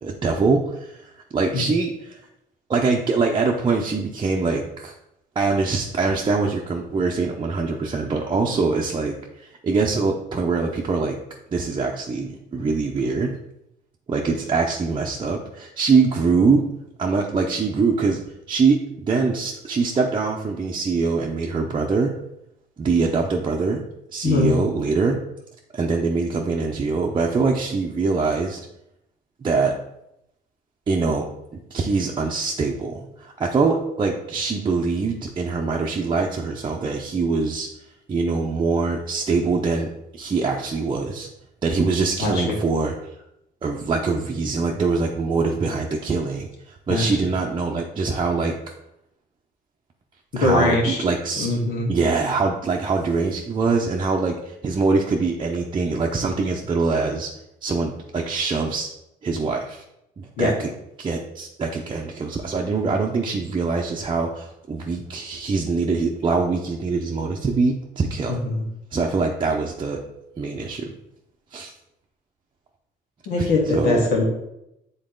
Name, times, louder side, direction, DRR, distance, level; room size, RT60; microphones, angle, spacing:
voice 1, 0.0-1.0 1.3-2.2 2.7-4.9 5.4-11.2 11.5-13.3 14.1-16.6 17.0-18.2 18.5-22.1 22.8-23.8 24.1-25.2 25.7-28.6 29.4-29.7 30.9-37.7 38.1-41.3 41.6-42.9 43.6-48.5 50.4-51.6 51.9-57.3 57.6-58.9 59.2-59.8 60.2-60.7 61.0-68.4 68.9-70.0 70.4-70.9 71.5-71.7 73.4-73.5 73.7-74.1, right 4 dB, 30° right, -2 dB, 0.7 m, -23 dB
voice 2, 42.2-42.6 46.9-47.1 50.3-51.0 51.4-51.9 60.4-60.5 68.5-68.6 73.3-74.2, left 2 dB, 80° left, -1 dB, 1.9 m, -21 dB
7.6 x 4.0 x 3.8 m, 0.83 s
cardioid pair, 110°, 17 cm